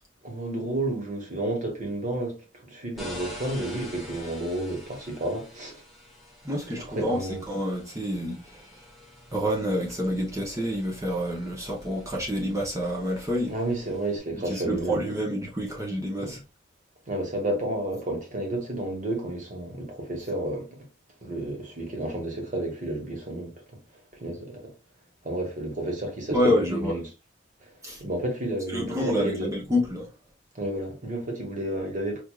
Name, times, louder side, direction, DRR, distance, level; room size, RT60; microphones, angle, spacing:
voice 1, 0.2-5.8 6.9-7.4 13.5-15.0 16.2-16.4 17.1-20.7 21.2-23.5 24.2-24.7 25.2-27.1 27.6-27.7 28.0-29.5 30.5-32.2, right 1 dB, 45° right, 1.2 m, -31 dB
sound 1, 3.0-14.2, left 1 dB, ahead, 1.1 m, -46 dB
voice 2, 6.4-7.2 7.5-8.8 9.3-13.5 14.3-16.4 26.3-27.0 27.8-28.0 28.7-30.1, equal, 15° right, 0.8 m, -28 dB
4.6 x 2.5 x 2.4 m
head